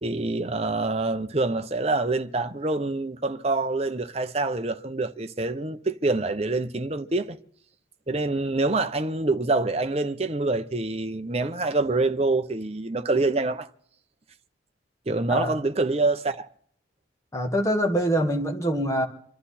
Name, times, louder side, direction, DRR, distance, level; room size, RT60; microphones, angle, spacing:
voice 1, 0.0-7.4 8.1-13.7 15.1-16.5, right 3 dB, 35° right, 0.8 m, -26 dB
voice 2, 17.3-19.0, equal, 15° left, 2.1 m, -24 dB
26.0 x 12.0 x 4.3 m
head